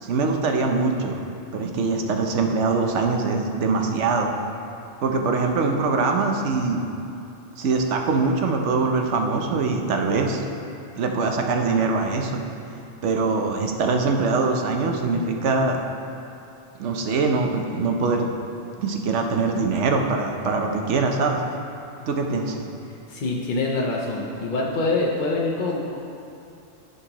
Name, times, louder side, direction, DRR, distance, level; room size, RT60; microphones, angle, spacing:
voice 1, 0.0-1.2 1.5-4.3 5.0-6.9 7.6-10.4 11.0-12.4 13.0-15.8 16.8-18.3 18.8-21.4 22.1-22.6, right 4 dB, 90° right, 3 dB, 1.1 m, -23 dB
voice 2, 22.9-26.0, left 3 dB, 50° left, -3 dB, 0.8 m, -25 dB
13.5 x 5.4 x 3.0 m, 2.6 s
omnidirectional pair, 1.2 m